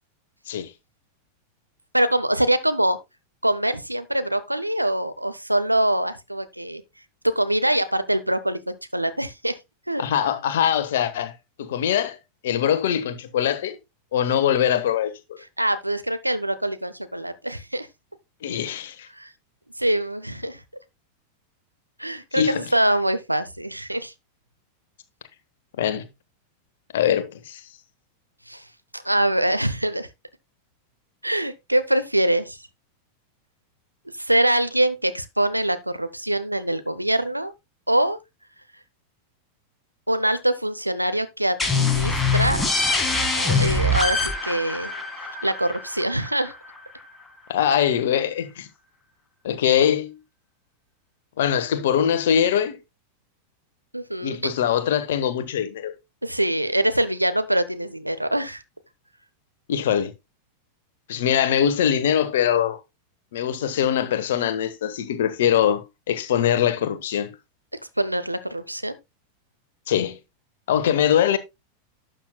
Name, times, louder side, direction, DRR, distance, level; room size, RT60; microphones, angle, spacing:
voice 1, 1.9-3.0 3.4-6.8 7.2-9.6 9.9-10.0 15.6-17.9 19.2-19.3 19.8-20.6 22.0-24.1 28.5-28.6 28.9-30.1 31.2-32.6 34.2-37.5 37.9-38.2 40.1-42.7 43.3-44.9 45.4-46.5 53.9-54.4 56.2-58.6 68.0-69.0 70.9-71.0, right 1 dB, 85° right, 0.7 m, -24 dB
voice 2, 10.0-12.2 12.4-13.8 14.1-15.4 18.4-19.1 22.3-22.7 25.8-26.0 26.9-27.6 47.5-48.7 49.4-50.2 51.4-52.8 54.2-55.9 59.7-60.1 61.1-62.8 63.3-67.3 69.9-70.2 70.7-71.4, left 9 dB, 60° left, 1.2 m, -22 dB
sound 1, 41.6-47.0, left 3 dB, 10° left, 1.9 m, -24 dB
12.0 x 7.8 x 2.2 m
figure-of-eight pair, 90°, 0 cm